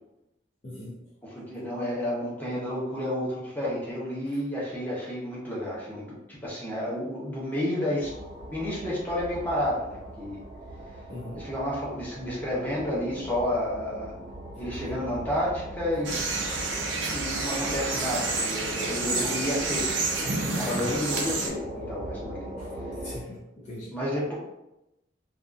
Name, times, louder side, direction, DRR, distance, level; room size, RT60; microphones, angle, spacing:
voice 1, 0.6-1.0 4.2-4.4 11.1-11.5 20.7-21.0 22.6-22.8 23.0-23.9, left 1 dB, 40° left, -4 dB, 0.4 m, -40 dB
voice 2, 1.2-6.0 6.3-8.1 8.5-10.4 11.4-14.1 14.6-16.1 17.1-22.5 23.9-24.3, left 1 dB, 10° left, -7 dB, 0.8 m, -31 dB
sound 1, 8.0-23.2, right 1 dB, 25° right, 0.5 m, -40 dB
sound 2, 16.0-21.5, right 3 dB, 80° right, 0.5 m, -29 dB
2.7 x 2.4 x 2.3 m, 0.91 s
head